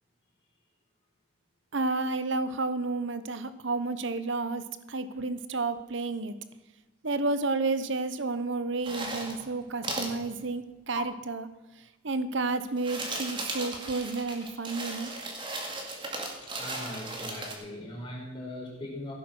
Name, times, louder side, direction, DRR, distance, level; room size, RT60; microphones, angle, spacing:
voice 1, 1.7-6.4 7.0-11.5 12.0-15.1, right 3 dB, 60° right, 12 dB, 0.9 m, -31 dB
sound 1, 8.8-9.5 9.8-10.1 11.0-11.1 12.6-17.5, right 2 dB, 25° right, 2.1 m, -36 dB
voice 2, 16.4-19.1, left 1 dB, 25° left, -3 dB, 4.8 m, -40 dB
16.0 x 9.0 x 6.1 m, 1.2 s
head